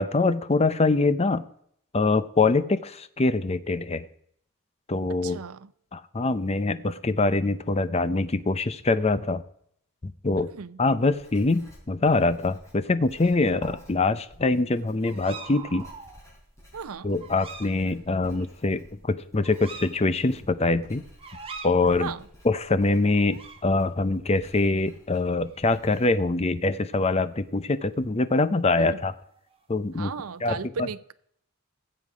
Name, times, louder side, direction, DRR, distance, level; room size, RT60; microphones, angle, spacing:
voice 1, 0.0-1.4 1.9-4.1 4.9-5.4 5.9-9.4 10.2-10.5 10.8-15.9 17.0-21.0 21.6-22.1 22.4-29.1 29.7-30.1 30.4-30.6, left 3 dB, 30° left, 0.6 m, -24 dB
voice 2, 5.2-5.7 10.4-10.8 16.7-17.1 22.0-22.3 28.8-29.0 29.9-31.1, right 6 dB, 85° right, 0.6 m, -36 dB
Writing, 11.0-26.1, equal, 15° left, 4.5 m, -52 dB
sound 1, 13.2-13.3 15.0-16.2 17.2-17.7 18.3-18.5 19.4-19.9 21.2-21.7 23.1-23.6 24.8-25.0 25.3-25.6 29.0-29.7, right 5 dB, 25° right, 1.3 m, -42 dB
18.5 x 7.9 x 4.9 m
head